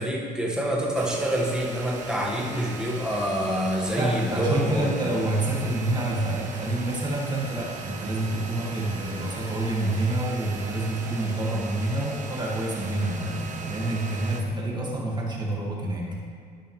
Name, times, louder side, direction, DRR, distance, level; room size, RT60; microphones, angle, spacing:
voice 1, 0.0-5.1, equal, 5° right, -4 dB, 1.6 m, -26 dB
sound 1, 0.9-14.4, right 4 dB, 45° right, 1.1 m, -39 dB
voice 2, 3.9-16.1, right 1 dB, 25° right, -3 dB, 1.9 m, -28 dB
13.0 x 5.5 x 3.3 m, 2.2 s
cardioid pair, 110°, 17 cm